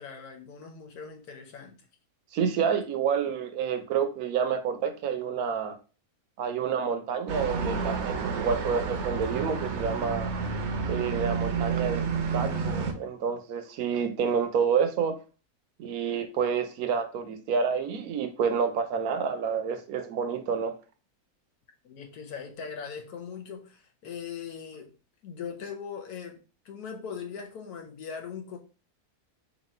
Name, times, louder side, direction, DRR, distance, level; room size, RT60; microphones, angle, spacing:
voice 1, 0.0-1.8 21.8-24.9 25.2-28.6, left 6 dB, 85° left, 1.3 m, -40 dB
voice 2, 2.3-5.7 6.4-10.3 10.9-15.1 15.8-20.7, right 6 dB, 80° right, 1.1 m, -28 dB
sound 1, 7.3-12.9, right 5 dB, 60° right, 0.8 m, -30 dB
3.0 x 2.9 x 4.2 m
omnidirectional pair, 1.6 m